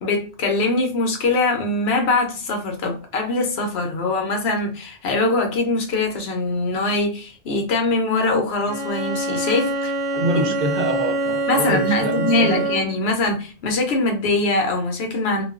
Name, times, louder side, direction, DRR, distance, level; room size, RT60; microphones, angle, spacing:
voice 1, 0.0-9.9 11.5-15.4, left 2 dB, 70° left, 3 dB, 0.9 m, -22 dB
Bowed string instrument, 8.7-13.1, right 2 dB, 75° right, 0.9 m, -25 dB
voice 2, 10.1-12.7, right 1 dB, 55° right, 3 dB, 0.5 m, -25 dB
2.3 x 2.3 x 2.3 m, 0.36 s
omnidirectional pair, 1.1 m